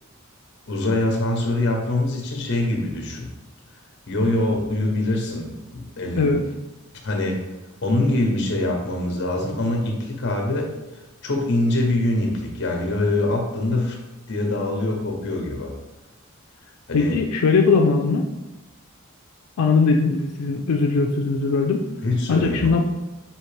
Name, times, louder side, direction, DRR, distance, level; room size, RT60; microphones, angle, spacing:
voice 1, 0.7-3.3 4.1-6.4 7.0-7.4 7.8-10.7 11.2-14.0 14.3-15.7 16.9-17.2 22.0-22.7, left 2 dB, 55° left, 1 dB, 0.8 m, -24 dB
voice 2, 16.9-18.3 19.6-21.9 22.3-22.8, left 4 dB, 90° left, 2 dB, 0.4 m, -20 dB
5.6 x 2.8 x 3.2 m, 1.0 s
head